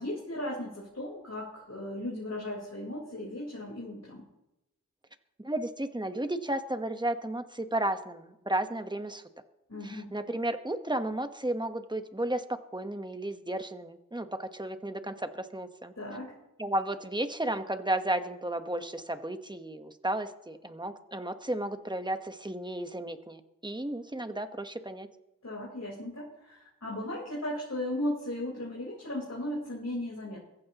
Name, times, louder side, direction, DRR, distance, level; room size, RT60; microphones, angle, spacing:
voice 1, 0.0-4.3 9.7-10.1 16.0-16.4 25.4-30.4, left 1 dB, 50° left, -4 dB, 4.4 m, -36 dB
voice 2, 5.4-9.2 9.8-15.9 16.6-25.1, right 1 dB, 15° right, 8 dB, 1.2 m, -33 dB
22.5 x 15.0 x 3.0 m, 0.91 s
wide cardioid pair, 60°, 34 cm